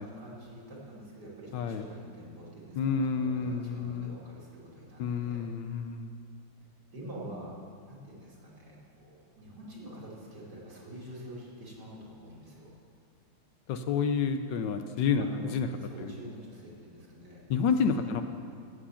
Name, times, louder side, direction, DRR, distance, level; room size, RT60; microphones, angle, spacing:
voice 1, 0.0-5.4 6.9-7.5 7.9-12.7 15.2-15.5 15.8-18.2, right 1 dB, 55° right, -5 dB, 3.1 m, -46 dB
voice 2, 1.5-1.8 2.8-4.2 5.0-6.1 13.7-15.7 16.0-16.1 17.5-18.2, left 6 dB, 75° left, 8 dB, 1.3 m, -29 dB
14.5 x 8.5 x 5.7 m, 2.2 s
omnidirectional pair, 2.1 m